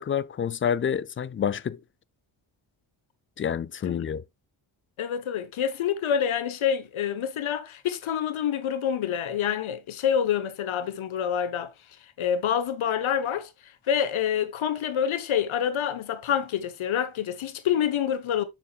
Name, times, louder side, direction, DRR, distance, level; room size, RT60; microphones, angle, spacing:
voice 1, 0.0-1.8 3.4-4.2, left 8 dB, 30° left, 0.3 m, -28 dB
voice 2, 5.0-11.7 12.2-18.4, left 8 dB, 70° left, 1.1 m, -27 dB
7.2 x 5.9 x 2.3 m
cardioid pair, 60°, 50 cm